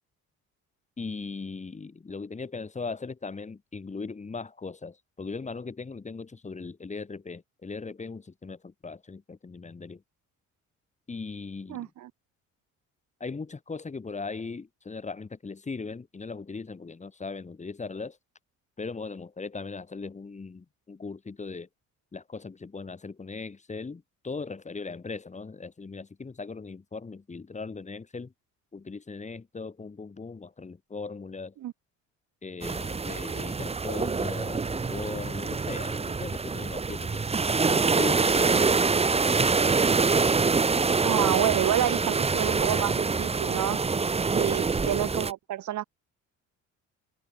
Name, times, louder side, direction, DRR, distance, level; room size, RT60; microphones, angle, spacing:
voice 1, 1.0-10.0 11.1-11.9 13.2-18.2 18.8-21.7 22.1-28.3 28.7-31.5 32.4-37.3 37.6-38.9 39.3-39.4 44.4-44.6, left 4 dB, 25° left, 5.7 m, -38 dB
voice 2, 11.7-12.1 31.6-31.7 41.0-43.8 44.3-45.8, right 13 dB, 70° right, 6.8 m, -29 dB
sound 1, 32.6-45.3, right 4 dB, 20° right, 1.5 m, -25 dB
cardioid pair, 125°, 31 cm